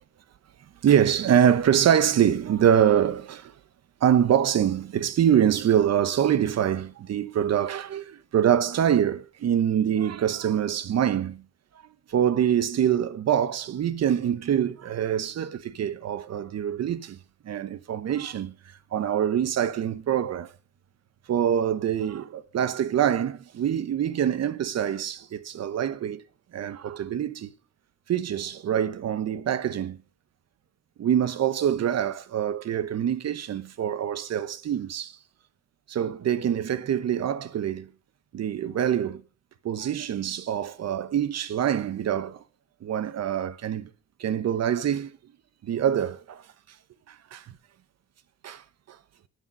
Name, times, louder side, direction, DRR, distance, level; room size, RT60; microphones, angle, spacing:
voice 1, 0.8-3.5 4.0-11.4 12.1-17.2 17.4-18.5 18.9-20.5 21.3-26.2 26.5-27.5 28.1-30.0 31.0-35.1 35.9-37.9 38.3-39.2 39.6-42.4 42.8-43.9 44.2-45.1 45.6-46.4 47.1-47.4 48.4-48.6, right 9 dB, 55° right, 1.1 m, -25 dB
12.0 x 9.0 x 5.4 m
cardioid pair, 90°, 30 cm